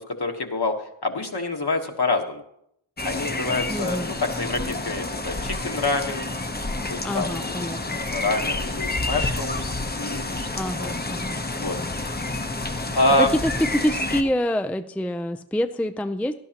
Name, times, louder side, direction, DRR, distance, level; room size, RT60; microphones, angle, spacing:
voice 1, 0.0-2.4 3.0-6.2 6.9-7.8 8.1-10.5 10.8-10.9 11.5-11.8 12.9-13.3, left 2 dB, 50° left, 3 dB, 1.4 m, -26 dB
sound 1, 3.0-14.2, left 2 dB, 20° left, 0.8 m, -29 dB
voice 2, 3.7-4.1 7.0-8.0 10.5-11.4 13.2-16.3, left 1 dB, 5° left, 8 dB, 0.4 m, -26 dB
17.0 x 11.0 x 2.9 m, 0.73 s
wide cardioid pair, 60°, 48 cm